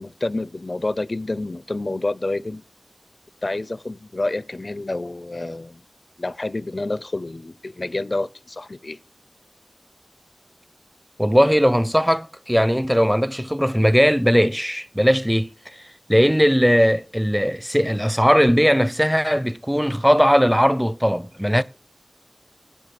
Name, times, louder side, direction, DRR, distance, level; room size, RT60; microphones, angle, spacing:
voice 1, 0.0-2.6 3.4-5.8 6.2-9.0, left 2 dB, 65° left, 0.5 m, -28 dB
voice 2, 11.2-15.5 16.1-21.6, equal, ahead, 0.6 m, -18 dB
11.0 x 8.9 x 6.5 m
wide cardioid pair, 50°, 0 cm